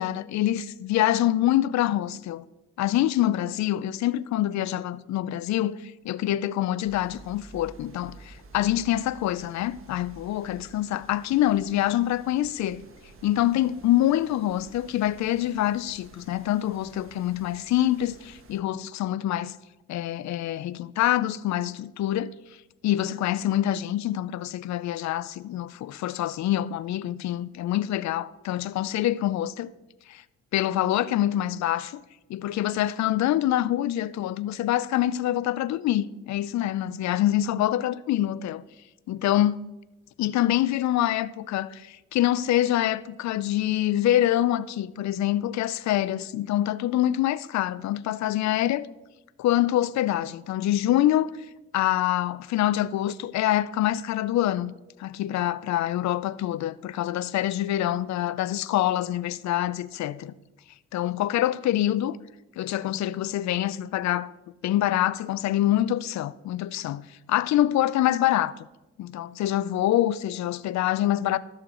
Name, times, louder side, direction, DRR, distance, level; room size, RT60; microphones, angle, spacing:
voice 1, 0.0-2.5 2.8-12.8 13.2-19.6 19.9-22.3 22.8-29.7 30.1-30.2 30.5-32.0 32.3-38.6 39.1-39.6 40.2-48.9 49.4-51.3 51.7-54.7 55.0-60.3 60.9-62.2 62.6-64.3 64.6-68.5 69.0-71.4, left 13 dB, 65° left, 0.5 m, -25 dB
sound 1, 6.8-18.6, right 3 dB, 45° right, 1.4 m, -51 dB
14.5 x 6.5 x 3.8 m
cardioid pair, 90°, 30 cm